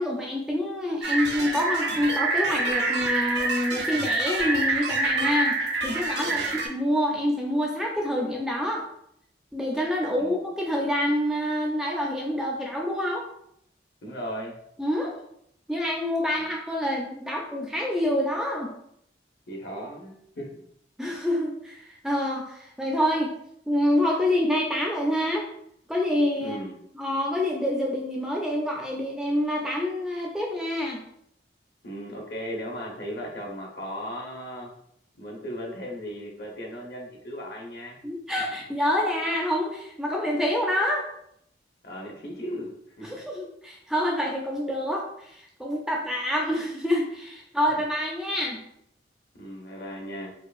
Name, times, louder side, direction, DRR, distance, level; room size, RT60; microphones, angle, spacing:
voice 1, 0.0-5.6 5.8-8.8 9.5-13.2 14.8-15.1 15.7-18.7 21.0-23.3 23.7-25.5 25.9-26.6 27.0-31.0 38.0-41.1 43.0-48.6, left 1 dB, 5° right, -1 dB, 0.3 m, -27 dB
sound 1, 1.0-6.7, right 3 dB, 70° right, 0.6 m, -26 dB
voice 2, 6.2-6.6 10.2-10.4 14.0-14.6 16.4-16.5 19.5-20.5 26.4-26.7 31.8-34.7 35.1-38.0 41.8-43.1 47.7-47.8 49.3-50.3, equal, 60° left, -1 dB, 0.8 m, -37 dB
4.4 x 2.4 x 2.4 m, 0.72 s
head